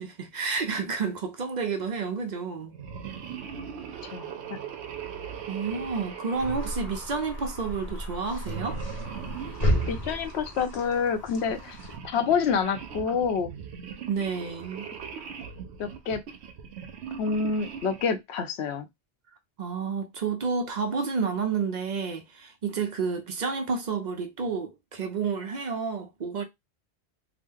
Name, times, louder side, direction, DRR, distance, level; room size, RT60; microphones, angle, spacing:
voice 1, 0.0-2.7 5.5-8.8 14.1-14.9 19.6-26.4, right 5 dB, 55° right, 0.5 m, -30 dB
sound 1, 2.7-7.6 8.4-10.7 11.4-18.2, right 7 dB, 80° right, 0.9 m, -40 dB
voice 2, 4.1-4.6 9.9-11.8 12.1-13.5 15.8-16.2 17.2-18.9, left 6 dB, 80° left, 0.8 m, -27 dB
sound 2, 6.3-12.0, equal, 35° left, 0.6 m, -32 dB
2.9 x 2.0 x 3.5 m
omnidirectional pair, 1.1 m